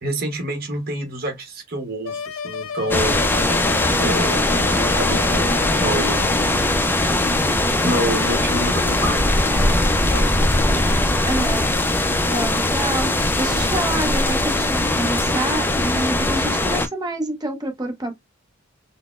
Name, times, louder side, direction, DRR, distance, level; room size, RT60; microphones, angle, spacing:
voice 1, 0.0-3.2 3.9-6.3 7.8-10.3, right 1 dB, 45° right, 0.9 m, -28 dB
sound 1, 2.0-6.5, left 6 dB, 80° left, 0.6 m, -32 dB
sound 2, 2.9-16.9, left 1 dB, 10° left, 0.3 m, -20 dB
voice 2, 11.2-11.8 12.2-18.1, right 1 dB, 20° right, 0.7 m, -27 dB
3.9 x 2.0 x 2.3 m
head